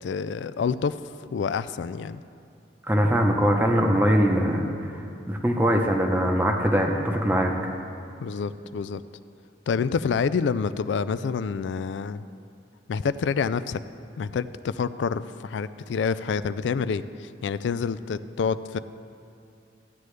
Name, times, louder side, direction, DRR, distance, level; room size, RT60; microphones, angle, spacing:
voice 1, 0.0-1.0 1.3-2.2 8.2-9.0 9.7-12.2 12.9-13.8 14.2-18.8, left 5 dB, 75° left, 14 dB, 0.3 m, -27 dB
voice 2, 2.9-4.9 5.3-7.5, equal, 10° right, 1 dB, 0.8 m, -22 dB
15.0 x 9.1 x 3.3 m, 2.6 s
head